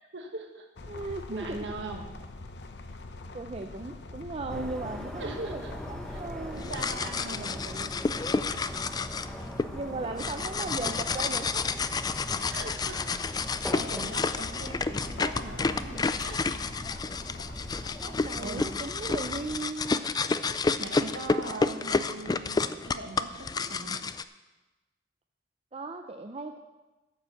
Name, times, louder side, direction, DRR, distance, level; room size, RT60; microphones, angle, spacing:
voice 1, 0.1-0.7 1.3-2.1 5.2-5.7 6.1-6.2 6.5-8.0 10.0-10.2 12.5-13.2 13.7-16.4 18.4-18.7 20.4-24.0, right 2 dB, 85° right, 3 dB, 1.5 m, -41 dB
sound 1, 0.8-18.0, left 2 dB, 65° left, 0.8 m, -44 dB
voice 2, 0.9-1.6 3.3-6.7 9.7-11.7 14.0-14.2 14.5-14.6 18.0-20.1 25.7-26.6, right 3 dB, 35° right, 5 dB, 0.5 m, -37 dB
sound 2, 4.5-19.6, equal, 5° left, 0.9 m, -42 dB
sound 3, 6.5-9.6 10.2-24.2, left 4 dB, 20° left, 0.3 m, -30 dB
9.6 x 7.1 x 7.1 m, 1.1 s
head